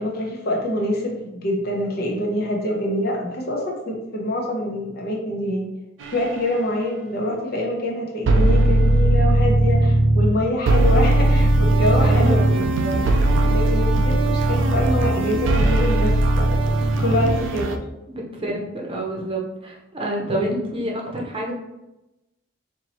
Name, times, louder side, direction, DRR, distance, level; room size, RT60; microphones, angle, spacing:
voice 1, 0.0-5.7 6.1-12.4 13.4-16.5 17.0-17.8 20.3-20.6, left 1 dB, 55° left, 0 dB, 0.8 m, -25 dB
sound 1, 6.0-6.2 8.3-10.3 10.7-17.8, right 1 dB, 75° right, 0.4 m, -18 dB
voice 2, 12.0-13.1 18.4-21.5, right 1 dB, 30° right, -2 dB, 0.8 m, -28 dB
4.5 x 2.7 x 3.0 m, 0.93 s
head